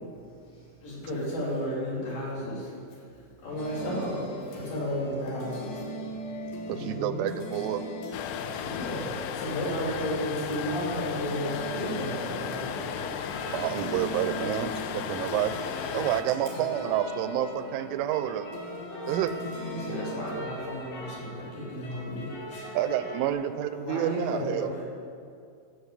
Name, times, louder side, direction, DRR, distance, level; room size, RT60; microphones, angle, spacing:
voice 1, 0.2-1.0 3.2-3.3 3.7-4.0 4.8-5.2 6.1-6.9 8.5-9.2 10.0-10.1 13.3-13.5, right 6 dB, 25° right, -7 dB, 1.4 m, -51 dB
voice 2, 0.8-2.7 3.4-4.2 4.5-5.8 6.7-7.3 8.5-13.0 14.7-14.8 16.5-16.6 19.7-22.8 23.8-24.9, equal, 50° left, -6 dB, 4.4 m, -33 dB
sound 1, 3.6-20.3, left 1 dB, 70° left, 3.3 m, -40 dB
voice 3, 6.7-7.8 13.5-15.6 15.9-18.5 19.1-19.4 22.7-24.7, right 11 dB, 85° right, 11 dB, 3.1 m, -29 dB
sound 2, 8.1-16.2, left 9 dB, 90° left, 3.2 m, -35 dB
sound 3, 12.3-23.3, equal, 35° left, 4.5 m, -42 dB
16.0 x 6.4 x 7.3 m, 2.4 s
omnidirectional pair, 5.5 m